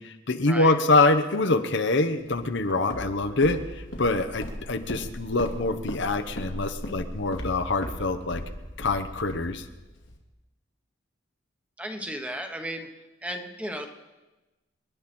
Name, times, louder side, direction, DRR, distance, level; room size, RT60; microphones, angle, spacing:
voice 1, 0.0-8.4 8.8-9.6, left 2 dB, 65° left, 8 dB, 1.0 m, -25 dB
Walk footsteps, 2.3-10.2, equal, 80° left, 2.2 m, -38 dB
voice 2, 11.8-12.9 13.2-13.9, equal, 5° right, 5 dB, 1.2 m, -34 dB
29.0 x 10.5 x 4.4 m, 1.1 s
head